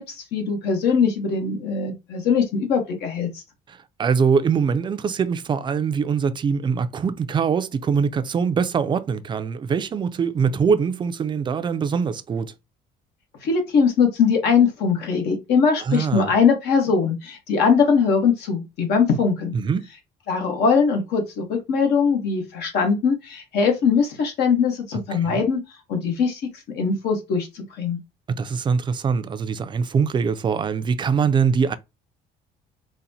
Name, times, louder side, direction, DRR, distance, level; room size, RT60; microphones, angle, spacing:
voice 1, 0.0-3.4 13.4-19.5 20.3-25.6 25.9-28.0, left 5 dB, 75° left, 1.1 m, -21 dB
voice 2, 3.7-12.5 15.8-16.3 19.5-19.9 25.1-25.4 28.4-31.7, right 6 dB, 30° right, 0.3 m, -23 dB
4.0 x 2.1 x 2.6 m
cardioid pair, 110°, 17 cm